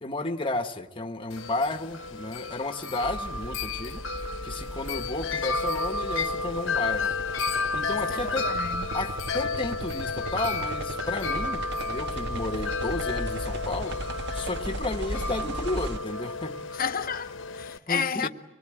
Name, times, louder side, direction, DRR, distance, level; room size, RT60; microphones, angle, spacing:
voice 1, 0.0-4.0 4.4-7.1 7.7-8.5 8.9-14.0 14.3-16.6 17.9-18.3, left 2 dB, 25° left, 1.1 m, -32 dB
Wind chime, 1.3-17.8, left 3 dB, 70° left, 1.1 m, -32 dB
sound 1, 3.0-16.0, right 1 dB, 60° right, 1.5 m, -37 dB
voice 2, 8.1-9.0 16.7-18.3, left 6 dB, 45° left, 0.9 m, -31 dB
25.0 x 20.5 x 9.0 m
head